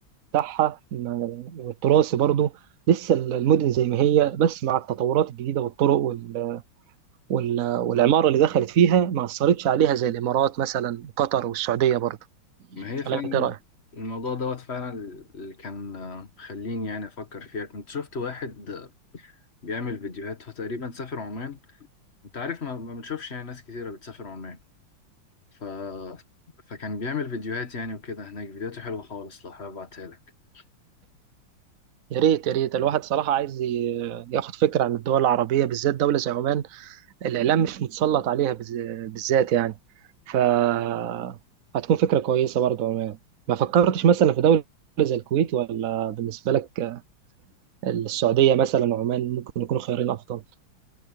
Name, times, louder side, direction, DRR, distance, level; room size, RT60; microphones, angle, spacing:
voice 1, 0.3-2.5 2.9-6.6 7.3-12.2 13.1-13.6 32.1-39.7 40.3-41.4 41.7-43.2 43.5-44.6 45.0-47.0 47.8-50.4, right 10 dB, 60° right, 0.9 m, -23 dB
voice 2, 12.7-13.5 13.9-21.6 22.3-24.6 25.6-26.2 26.7-30.2 30.5-30.6, left 4 dB, 30° left, 1.9 m, -34 dB
omnidirectional pair, 2.3 m